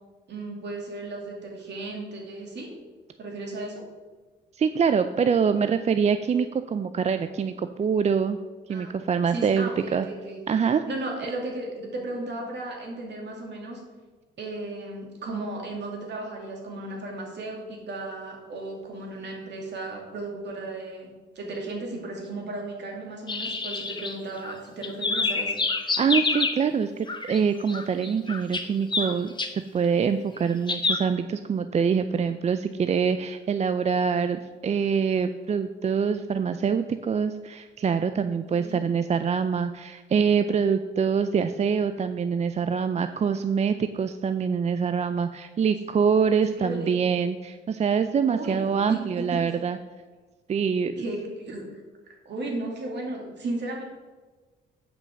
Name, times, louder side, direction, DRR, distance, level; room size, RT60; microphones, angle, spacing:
voice 1, 0.3-2.7 3.2-3.8 8.7-8.9 9.3-10.4 10.9-13.8 14.4-21.1 21.3-25.6 38.5-38.8 46.5-47.0 48.2-49.4 51.0-51.8 52.2-53.8, right 2 dB, 60° right, 0 dB, 2.7 m, -35 dB
voice 2, 4.6-8.4 8.7-10.1 10.5-10.8 26.0-49.8 50.5-50.9, right 6 dB, 35° right, 10 dB, 0.4 m, -25 dB
sound 1, 23.3-24.5 24.8-26.6 27.1-27.4 27.7-29.5 30.7-31.0, left 3 dB, 25° left, 1.0 m, -27 dB
7.9 x 6.1 x 6.4 m, 1.3 s
cardioid pair, 90°, 20 cm